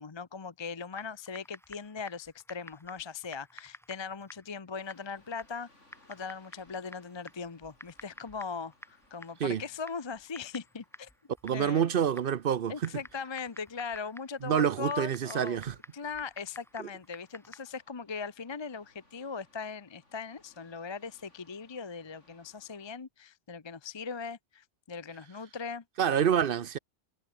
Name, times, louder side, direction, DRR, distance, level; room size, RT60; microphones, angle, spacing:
voice 1, 0.0-5.7 6.1-11.1 11.5-11.9 12.7-15.6 15.9-25.8, left 5 dB, 30° left, 0.7 m, -39 dB
Typing, 0.9-17.8, equal, ahead, 1.0 m, -53 dB
sound 1, 4.8-22.9, left 2 dB, 80° left, 7.0 m, -67 dB
voice 2, 11.4-12.9 14.4-15.7 16.8-16.9 26.0-26.8, right 8 dB, 55° right, 0.8 m, -27 dB
omnidirectional pair, 1.2 m